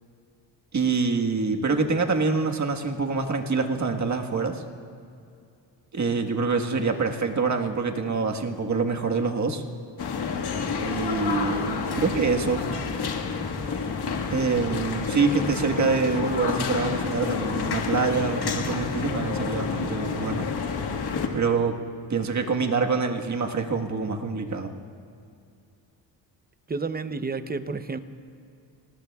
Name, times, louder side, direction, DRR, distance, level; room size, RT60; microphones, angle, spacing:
voice 1, 0.7-4.6 5.9-9.6 10.8-12.7 14.3-20.5 21.3-21.8 22.1-24.7, right 4 dB, 40° right, 3 dB, 1.5 m, -25 dB
sound 1, 10.0-21.3, left 5 dB, 60° left, 1.8 m, -29 dB
voice 2, 26.7-28.0, right 4 dB, 20° right, 11 dB, 0.7 m, -30 dB
26.0 x 19.0 x 2.4 m, 2.4 s
cardioid pair, 80°, 45 cm